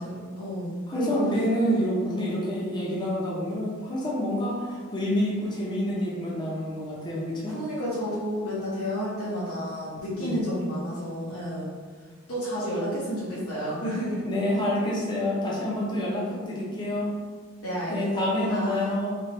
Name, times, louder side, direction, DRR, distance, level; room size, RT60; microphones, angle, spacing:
voice 1, 0.0-1.2 7.5-11.7 12.3-14.2 17.6-19.0, equal, 75° left, -9 dB, 1.1 m, -31 dB
voice 2, 0.9-7.5 10.2-10.4 14.3-17.1 17.9-19.1, left 1 dB, 20° left, -6 dB, 0.8 m, -27 dB
3.4 x 3.1 x 4.4 m, 1.5 s
head